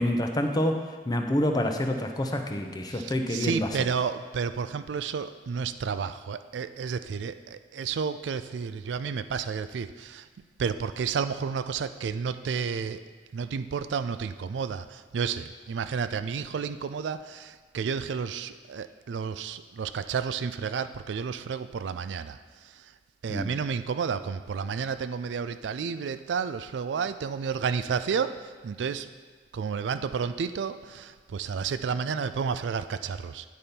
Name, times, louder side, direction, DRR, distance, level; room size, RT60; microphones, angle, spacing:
voice 1, 0.0-3.7 23.3-23.5, left 1 dB, 25° left, 4 dB, 0.6 m, -27 dB
voice 2, 2.9-10.3 10.6-13.0 13.3-22.4 23.2-29.1 29.5-33.4, right 6 dB, 85° right, 12 dB, 0.4 m, -31 dB
9.4 x 4.2 x 5.2 m, 1.5 s
head